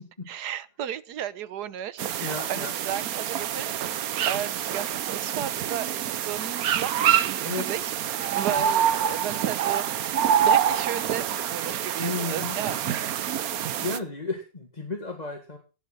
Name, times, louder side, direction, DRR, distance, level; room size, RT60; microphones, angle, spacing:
voice 1, 0.3-3.7 4.2-7.9 8.3-9.9 10.4-12.8, right 10 dB, 85° right, 16 dB, 1.4 m, -34 dB
sound 1, 2.0-14.0, right 9 dB, 65° right, 1.2 m, -26 dB
voice 2, 2.2-2.7 7.4-7.7 8.4-8.7 12.0-12.9 13.5-15.6, left 3 dB, 25° left, 3 dB, 1.9 m, -34 dB
18.0 x 7.1 x 6.0 m, 0.34 s
omnidirectional pair, 1.7 m